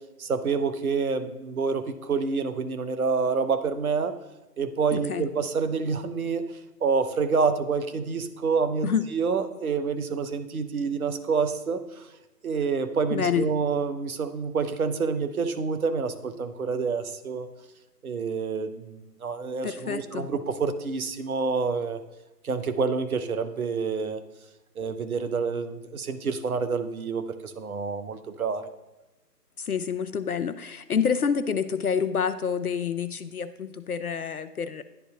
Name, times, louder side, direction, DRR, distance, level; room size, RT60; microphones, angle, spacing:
voice 1, 0.2-4.1 4.6-6.5 6.8-12.1 12.4-17.5 18.0-22.0 22.4-24.2 24.8-28.7, right 5 dB, 60° right, 9 dB, 0.8 m, -28 dB
voice 2, 4.9-5.3 8.8-9.1 13.1-13.5 19.6-20.3 29.6-34.8, left 7 dB, 65° left, 12 dB, 0.5 m, -28 dB
11.5 x 3.9 x 2.4 m, 1.0 s
figure-of-eight pair, 145°, 48 cm